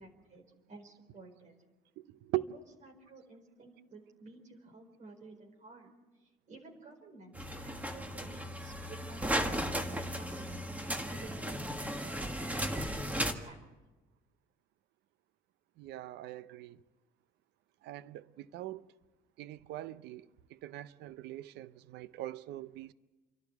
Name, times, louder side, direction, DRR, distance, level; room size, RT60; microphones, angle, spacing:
voice 1, 0.0-1.6 2.3-5.9 6.2-13.6, right 3 dB, 45° right, 4.6 m, -53 dB
sound 1, 7.3-13.3, equal, 10° right, 1.7 m, -35 dB
voice 2, 15.8-16.8 17.8-18.8 19.4-22.9, right 16 dB, 80° right, 0.7 m, -41 dB
28.5 x 12.0 x 8.1 m
cardioid pair, 110°, 17 cm